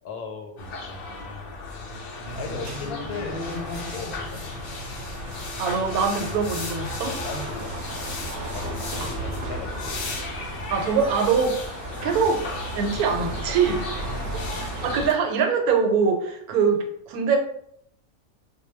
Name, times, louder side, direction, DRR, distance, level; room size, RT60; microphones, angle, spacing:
voice 1, 0.0-0.6 2.0-3.4 3.9-4.4 7.0-7.7 8.5-10.1 12.0-12.2 14.0-14.4, left 3 dB, 90° left, 3 dB, 1.1 m, -37 dB
sound 1, 0.6-15.1, left 3 dB, 75° left, 0.5 m, -35 dB
sound 2, 2.2-15.1, right 1 dB, 65° right, 0.6 m, -35 dB
voice 2, 5.6-7.2 10.7-11.5 12.0-12.4 12.7-14.1 14.8-17.4, right 5 dB, 90° right, 3 dB, 1.1 m, -23 dB
2.2 x 2.2 x 3.1 m, 0.70 s
omnidirectional pair, 1.5 m